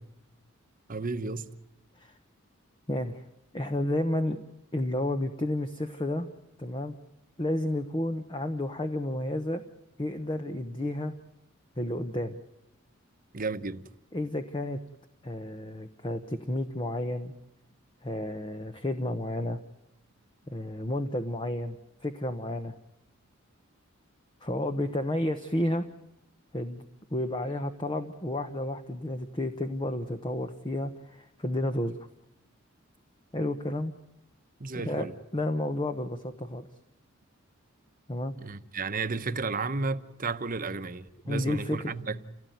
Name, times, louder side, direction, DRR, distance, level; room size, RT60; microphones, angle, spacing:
voice 1, 0.9-1.6 13.3-13.9 34.6-35.1 38.4-42.2, right 4 dB, 40° right, 1.0 m, -33 dB
voice 2, 2.9-3.2 3.5-4.4 4.7-6.3 6.6-6.9 7.4-9.6 10.0-11.1 11.8-12.4 14.1-14.8 15.2-17.3 18.0-19.6 20.5-21.8 22.0-22.7 24.4-25.9 26.5-26.8 27.1-31.9 33.3-33.9 34.8-35.1 35.3-36.7 38.1-38.3 41.3-41.9, left 1 dB, 25° left, 1.0 m, -31 dB
29.0 x 17.0 x 9.4 m
head